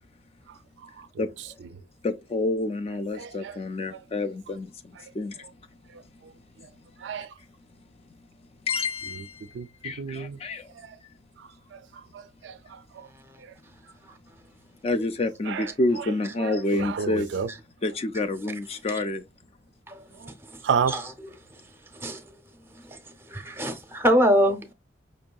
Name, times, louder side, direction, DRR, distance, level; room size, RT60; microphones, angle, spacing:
voice 1, 0.8-1.3 3.1-3.6 3.9-4.0 5.0-5.1 5.9-6.0 6.6-6.7 7.0-7.3 9.1-9.2 9.5-10.4 10.8-11.0 11.4-13.1 13.4-13.5 15.5-15.7 16.0-16.1 16.4-17.5 20.2-20.3 20.6-20.9, right 6 dB, 70° right, 0.3 m, -32 dB
voice 2, 2.0-4.7 5.2-5.3 8.7-9.3 9.8-10.6 14.8-17.3 17.8-19.2, left 2 dB, 35° left, 0.3 m, -28 dB
voice 3, 20.4-21.1 21.5-22.4 22.7-24.7, equal, 15° right, 0.7 m, -26 dB
5.2 x 2.6 x 2.2 m
head